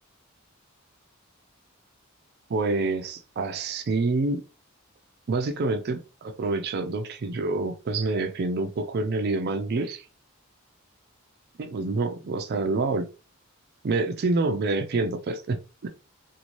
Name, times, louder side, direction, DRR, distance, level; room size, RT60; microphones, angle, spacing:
voice 1, 2.5-4.4 5.3-10.0 11.6-13.1 13.8-15.9, right 3 dB, 50° right, 7 dB, 0.4 m, -27 dB
2.7 x 2.5 x 3.0 m, 0.33 s
head